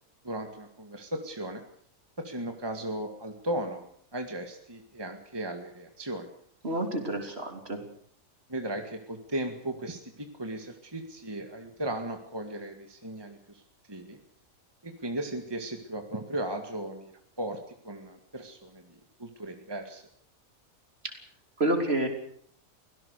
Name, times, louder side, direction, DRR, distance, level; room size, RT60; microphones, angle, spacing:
voice 1, 0.2-1.6 2.2-3.8 4.1-6.3 8.5-13.6 13.9-14.2 14.8-17.1 17.4-17.6 17.8-20.0, right 1 dB, 15° right, 5 dB, 2.0 m, -36 dB
voice 2, 6.6-7.8 21.0-21.1 21.6-22.1, right 1 dB, 45° right, 4 dB, 3.7 m, -28 dB
24.5 x 17.5 x 6.7 m, 0.62 s
omnidirectional pair, 1.5 m